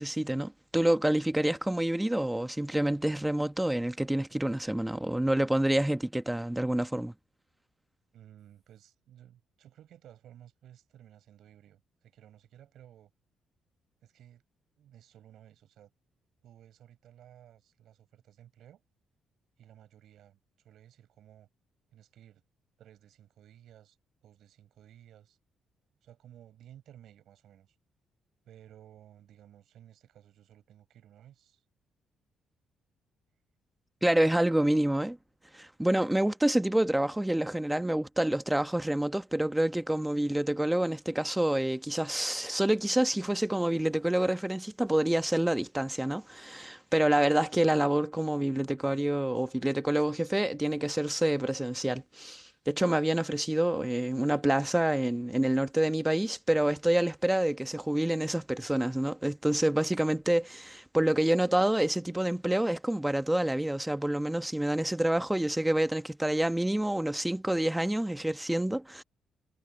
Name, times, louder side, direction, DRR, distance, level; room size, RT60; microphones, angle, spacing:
voice 1, 0.0-7.1 34.0-35.2 35.5-69.0, right 1 dB, 5° right, 1.1 m, -27 dB
voice 2, 8.1-13.1 14.0-14.4 14.8-15.9 16.4-18.8 19.6-21.5 21.9-22.4 22.8-24.0 24.2-25.4 26.0-27.7 28.4-31.6 60.9-61.0, right 11 dB, 75° right, 6.4 m, -56 dB
cardioid pair, 90°, 0 cm